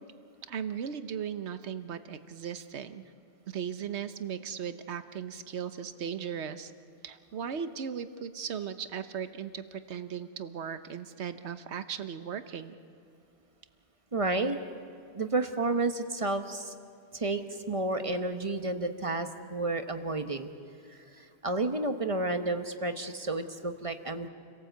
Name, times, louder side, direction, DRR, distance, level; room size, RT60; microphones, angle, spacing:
voice 1, 0.5-3.1 3.5-6.7 7.0-12.7, right 7 dB, 75° right, 11 dB, 1.2 m, -37 dB
voice 2, 14.1-14.6 15.1-16.7 17.1-20.5 21.2-24.3, right 2 dB, 30° right, 7 dB, 1.1 m, -31 dB
28.5 x 17.5 x 8.0 m, 2.4 s
omnidirectional pair, 1.1 m